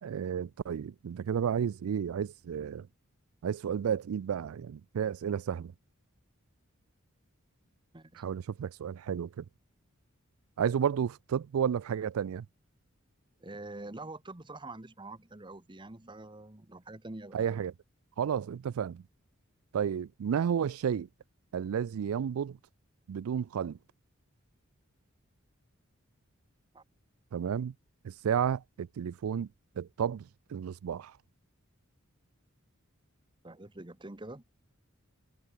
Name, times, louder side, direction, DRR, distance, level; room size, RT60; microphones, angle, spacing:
voice 1, 0.0-2.9 3.4-5.7 8.2-9.4 10.6-12.5 17.3-17.7 18.2-19.0 19.7-21.1 21.5-22.6 23.1-23.8 27.3-27.7 28.0-29.5 29.8-31.1, right 8 dB, 85° right, 0.4 m, -32 dB
voice 2, 13.4-17.4 26.7-26.8 33.4-34.4, right 2 dB, 20° right, 1.2 m, -45 dB
head